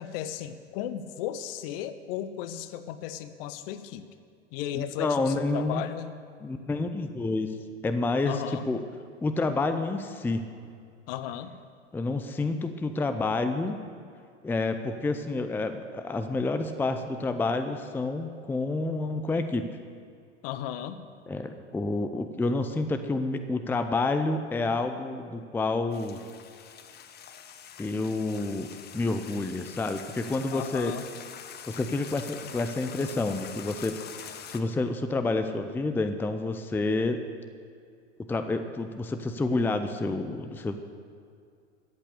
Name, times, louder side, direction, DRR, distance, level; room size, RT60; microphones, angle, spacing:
voice 1, 0.0-4.0 4.5-6.1 8.2-8.7 11.1-11.5 20.4-21.0 30.5-31.1, left 10 dB, 50° left, 12 dB, 0.9 m, -35 dB
voice 2, 4.7-5.8 6.4-7.5 7.8-8.8 9.2-10.5 11.9-13.7 14.4-19.7 21.3-26.2 27.8-28.7 28.9-30.9 31.7-33.9 34.5-37.2 38.3-40.8, left 3 dB, 5° left, 8 dB, 0.5 m, -29 dB
sound 1, 25.9-34.6, left 8 dB, 30° left, 0.9 m, -44 dB
13.5 x 8.6 x 6.7 m, 2.3 s
hypercardioid pair, 90°, 36 cm